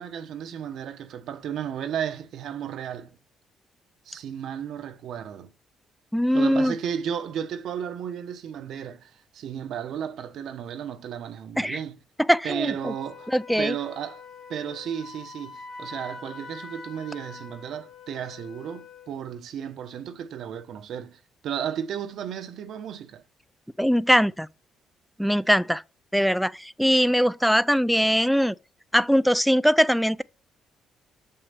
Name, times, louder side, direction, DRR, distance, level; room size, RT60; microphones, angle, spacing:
voice 1, 0.0-3.2 4.1-5.5 6.3-12.0 12.4-13.3 13.6-14.2 14.5-23.2, right 9 dB, 70° right, 0.9 m, -34 dB
voice 2, 6.1-6.7 11.6-11.8 12.3-12.9 13.3-13.8 23.8-24.5 25.2-25.8 26.1-28.5 28.9-30.2, equal, ahead, 0.3 m, -21 dB
Wind instrument woodwind instrument, 12.8-19.2, left 4 dB, 75° left, 1.6 m, -44 dB
7.0 x 5.7 x 6.7 m
cardioid pair, 110°, 0 cm